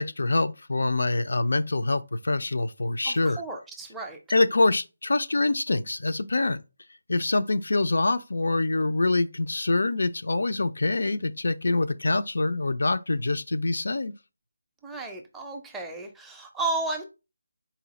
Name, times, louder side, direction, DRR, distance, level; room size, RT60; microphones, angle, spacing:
voice 1, 0.0-3.4 4.3-6.6 7.1-14.1, left 2 dB, 75° left, 0.4 m, -25 dB
voice 2, 3.0-4.2 14.8-17.0, right 2 dB, 5° right, 0.4 m, -33 dB
4.0 x 2.3 x 4.0 m
figure-of-eight pair, 170°, 0 cm